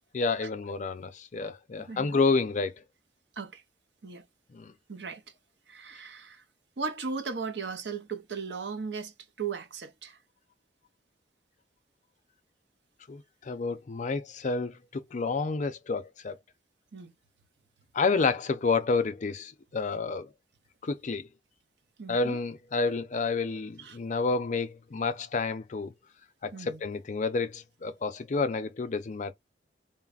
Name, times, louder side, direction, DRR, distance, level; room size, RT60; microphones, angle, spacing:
voice 1, 0.1-2.7 4.5-4.7 13.1-16.4 17.9-20.3 20.8-21.3 22.1-25.9 26.4-29.3, left 4 dB, 45° left, 0.5 m, -29 dB
voice 2, 1.9-2.2 3.4-3.6 4.0-4.2 4.9-5.2 5.7-6.4 6.8-10.2 16.9-17.1 22.0-22.4 23.8-24.0 26.5-26.8, right 5 dB, 70° right, 0.7 m, -37 dB
3.9 x 2.0 x 2.3 m
head